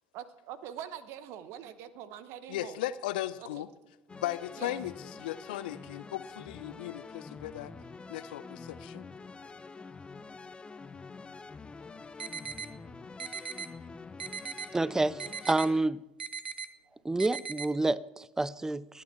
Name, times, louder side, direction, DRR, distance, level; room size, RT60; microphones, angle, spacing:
voice 1, 0.1-2.8 3.4-3.6 4.6-4.7, right 9 dB, 60° right, 1.0 m, -43 dB
voice 2, 2.5-3.7 4.1-7.7 8.1-9.0, left 14 dB, 70° left, 0.5 m, -37 dB
sound 1, 4.1-15.8, left 4 dB, 20° left, 0.7 m, -47 dB
sound 2, 12.2-12.7 13.2-13.7 14.2-14.7 15.2-15.7 16.2-16.7 17.2-17.7, right 6 dB, 90° right, 0.5 m, -38 dB
voice 3, 14.7-16.0 17.0-19.0, right 2 dB, 10° right, 0.5 m, -29 dB
22.0 x 8.5 x 4.5 m
hypercardioid pair, 65°, 5 cm